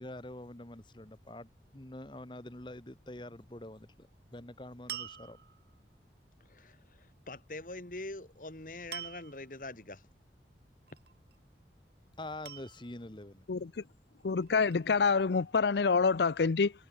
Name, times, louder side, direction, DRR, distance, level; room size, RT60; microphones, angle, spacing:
voice 1, 0.0-1.5 1.7-5.4 12.2-13.4, left 1 dB, 25° left, 1.1 m, -45 dB
sound 1, 4.9-5.8 8.9-9.5 10.9-11.4 12.4-13.2 14.2-15.1, right 10 dB, 65° right, 1.9 m, -45 dB
voice 2, 6.5-10.1, left 2 dB, 50° left, 2.2 m, -44 dB
voice 3, 14.2-16.7, left 5 dB, 75° left, 0.5 m, -27 dB
head